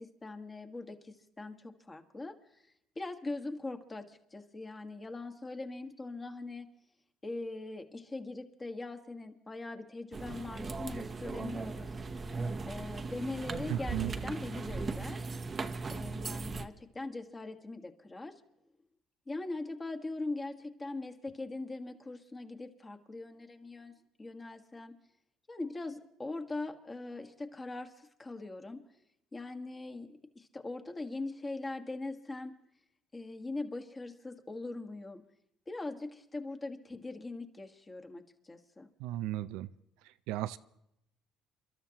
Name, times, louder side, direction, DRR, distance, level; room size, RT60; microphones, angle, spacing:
voice 1, 0.0-2.6 2.9-6.7 7.2-12.4 12.6-15.3 15.9-18.3 19.3-24.9 25.5-28.8 29.3-32.6 33.1-35.2 35.7-38.9, left 2 dB, 20° left, 5 dB, 1.6 m, -41 dB
sound 1, 10.1-16.7, right 3 dB, 30° right, 0.9 m, -38 dB
voice 2, 13.7-14.1 39.0-39.7 40.3-40.6, right 14 dB, 90° right, 13 dB, 0.5 m, -35 dB
29.5 x 12.5 x 3.0 m, 0.81 s
cardioid pair, 110°, 0 cm